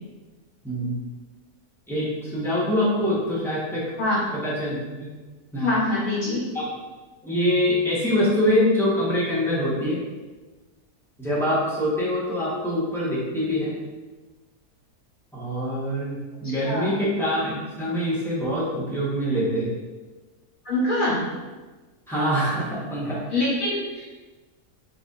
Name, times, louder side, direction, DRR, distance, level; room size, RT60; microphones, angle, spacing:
voice 1, 0.6-1.0 1.9-4.0 4.3-5.1 5.5-5.7 6.5-6.7 7.2-10.0 11.2-13.7 15.3-19.7 22.1-23.2, equal, ahead, -9 dB, 1.0 m, -24 dB
voice 2, 5.6-6.4 16.4-16.9 20.6-21.2 23.3-24.2, left 2 dB, 55° left, -9 dB, 2.0 m, -24 dB
5.0 x 3.3 x 2.5 m, 1.2 s
omnidirectional pair, 1.7 m